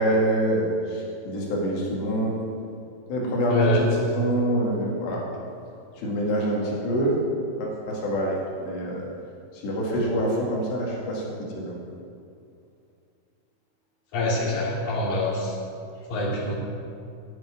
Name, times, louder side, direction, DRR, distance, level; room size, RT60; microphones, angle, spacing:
voice 1, 0.0-2.4 3.1-5.2 6.0-7.2 7.6-9.1 9.5-11.8, right 1 dB, 65° left, -3 dB, 4.2 m, -26 dB
voice 2, 3.5-3.8 14.1-15.5 16.1-16.5, left 1 dB, 50° left, -4 dB, 3.8 m, -24 dB
10.0 x 7.7 x 9.2 m, 2.4 s
omnidirectional pair, 5.5 m